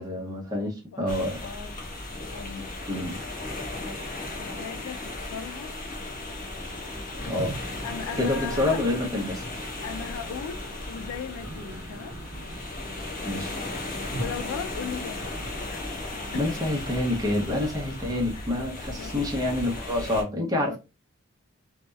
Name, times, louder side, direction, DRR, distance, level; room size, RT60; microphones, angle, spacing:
voice 1, 0.0-1.4 2.9-3.2 7.3-7.6 8.2-9.5 13.2-13.5 16.3-20.8, left 1 dB, 15° right, 0.5 m, -27 dB
voice 2, 0.9-1.8 2.3-2.7 4.4-5.7 7.2-7.4 7.8-8.8 9.8-12.2 14.2-15.9 16.3-16.4 18.3-18.6 18.9-19.4 19.8-20.1 20.6-20.8, left 7 dB, 85° left, 0.3 m, -38 dB
sound 1, 1.1-20.2, left 2 dB, 35° left, 0.6 m, -36 dB
Toilet flush, 7.2-16.3, right 2 dB, 70° right, 0.6 m, -42 dB
2.7 x 2.0 x 2.2 m
head